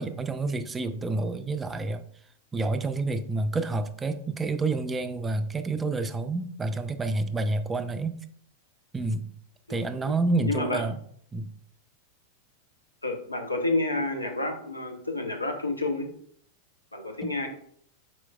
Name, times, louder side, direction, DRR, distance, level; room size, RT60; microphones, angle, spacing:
voice 1, 0.0-2.0 2.5-8.2 8.9-9.3 9.7-11.0 11.3-11.5 17.2-17.3, right 3 dB, 15° right, 10 dB, 0.4 m, -29 dB
voice 2, 9.7-10.1 10.5-10.8 13.0-16.1 16.9-17.5, left 2 dB, 85° left, 3 dB, 0.7 m, -29 dB
4.5 x 4.3 x 2.3 m, 0.63 s
figure-of-eight pair, 90°, 0 cm